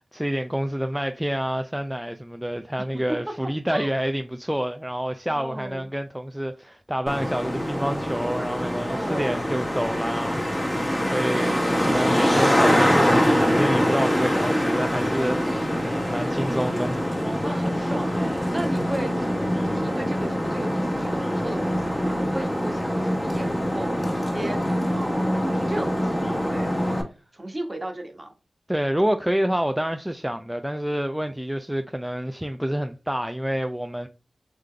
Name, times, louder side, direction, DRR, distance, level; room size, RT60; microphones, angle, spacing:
voice 1, 0.1-17.1 28.7-34.1, equal, 5° right, 0.4 m, -28 dB
voice 2, 5.3-5.9 8.9-9.4 17.2-19.4 19.6-27.0 27.3-28.3, right 1 dB, 30° right, 1.3 m, -35 dB
Traffic noise roadway noise, 7.1-27.0, equal, 15° left, 1.4 m, -24 dB
3.7 x 3.4 x 3.3 m
cardioid pair, 40°, 0 cm